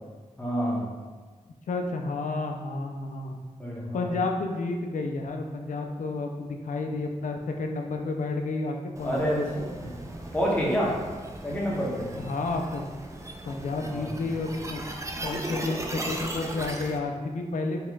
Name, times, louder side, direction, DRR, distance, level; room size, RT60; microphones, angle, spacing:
voice 1, 0.4-0.9 3.6-4.1 9.0-9.7 10.1-11.0 11.4-12.1 13.8-14.3, equal, 10° left, -5 dB, 0.9 m, -28 dB
voice 2, 1.7-3.4 3.9-9.5 12.2-12.9 13.5-14.8 15.2-17.9, left 3 dB, 75° left, 3 dB, 0.4 m, -31 dB
sound 1, 9.0-17.0, right 1 dB, 25° right, 0.4 m, -37 dB
4.2 x 3.1 x 2.3 m, 1.4 s
wide cardioid pair, 95°, 13 cm